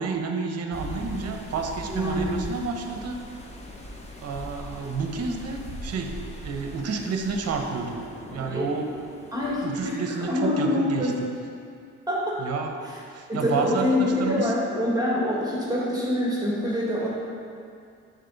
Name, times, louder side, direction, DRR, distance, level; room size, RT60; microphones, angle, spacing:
voice 1, 0.0-3.3 4.2-6.2 6.4-8.0 8.3-9.0 9.6-11.3 12.4-12.7 13.1-14.5, right 4 dB, 55° right, 3 dB, 0.9 m, -30 dB
sound 1, 0.7-10.3, left 1 dB, 20° left, 0.9 m, -40 dB
voice 2, 1.9-2.4 8.5-8.7 9.3-9.9 10.2-11.1 12.1-12.4 13.3-17.1, left 1 dB, 10° right, -6 dB, 1.8 m, -25 dB
9.1 x 4.0 x 3.9 m, 2.3 s
cardioid pair, 90°, 30 cm